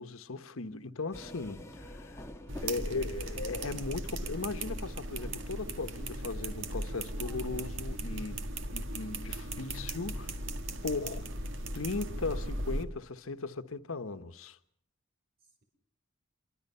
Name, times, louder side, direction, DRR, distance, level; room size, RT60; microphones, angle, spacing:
voice 1, 0.0-2.2 2.6-10.4 10.8-11.3 11.7-14.6, left 3 dB, 85° left, 1.1 m, -38 dB
sound 1, 1.1-7.7, left 1 dB, 15° left, 1.7 m, -50 dB
sound 2, 2.5-12.8, right 1 dB, 65° right, 1.8 m, -37 dB
voice 2, 2.6-3.1 15.4-15.6, right 2 dB, 50° right, 5.3 m, -63 dB
26.5 x 24.0 x 5.6 m
head